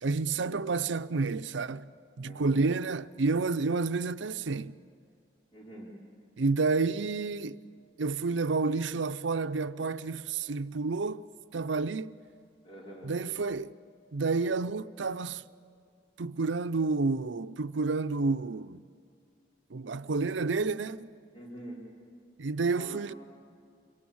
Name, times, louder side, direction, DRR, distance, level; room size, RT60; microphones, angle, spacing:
voice 1, 0.0-1.9 2.2-4.7 6.4-7.6 8.0-11.3 11.5-12.2 13.0-13.7 14.1-15.4 16.2-18.8 19.7-21.1 22.4-23.1, right 4 dB, 85° right, 0.6 m, -30 dB
voice 2, 2.2-2.6 5.5-5.9 12.6-13.1 21.3-21.8 22.7-23.2, right 1 dB, 25° left, 4.3 m, -45 dB
27.0 x 23.5 x 8.7 m
head